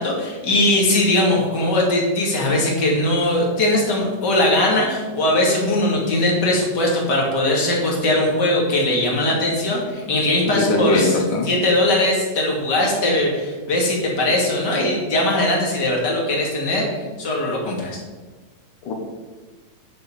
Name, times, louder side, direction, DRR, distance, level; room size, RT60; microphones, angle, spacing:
voice 1, 0.0-16.9 17.2-18.0, left 1 dB, 30° left, -2 dB, 2.3 m, -20 dB
voice 2, 10.5-11.5 18.9-19.0, left 2 dB, 65° left, -1 dB, 2.5 m, -20 dB
9.6 x 7.6 x 5.6 m, 1.3 s
omnidirectional pair, 4.5 m